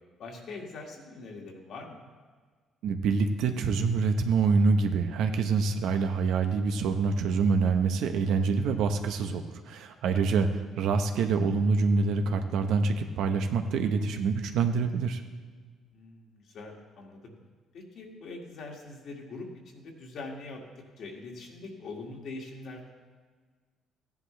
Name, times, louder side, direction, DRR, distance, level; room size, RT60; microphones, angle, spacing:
voice 1, 0.2-2.1 10.1-10.3 15.9-17.3 17.7-20.6 21.0-22.9, left 3 dB, 55° left, 0 dB, 2.0 m, -43 dB
voice 2, 2.8-10.5 10.8-15.2, right 4 dB, 75° right, 6 dB, 0.9 m, -26 dB
15.0 x 10.5 x 3.3 m, 1.5 s
cardioid pair, 135°, 0 cm